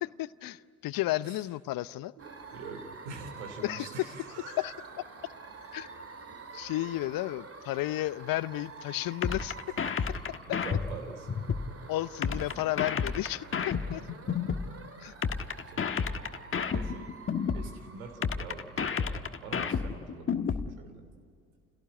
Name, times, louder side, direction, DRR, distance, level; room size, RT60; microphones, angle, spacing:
voice 1, 0.0-2.1 3.6-3.9 4.6-4.7 5.7-5.9 6.5-9.6 10.5-10.6 11.9-14.0 15.0-15.1, left 16 dB, 55° left, 0.7 m, -33 dB
sound 1, 2.2-20.2, right 4 dB, 35° right, 2.8 m, -48 dB
voice 2, 2.2-4.9 10.5-11.4 12.5-12.6 15.6-16.3 16.7-17.1 17.5-21.0, right 4 dB, 80° right, 3.4 m, -45 dB
sound 2, 9.2-11.7 12.2-14.7 15.2-17.7 18.2-20.7, left 6 dB, 30° left, 1.4 m, -31 dB
30.0 x 17.5 x 10.0 m
hypercardioid pair, 60°, 42 cm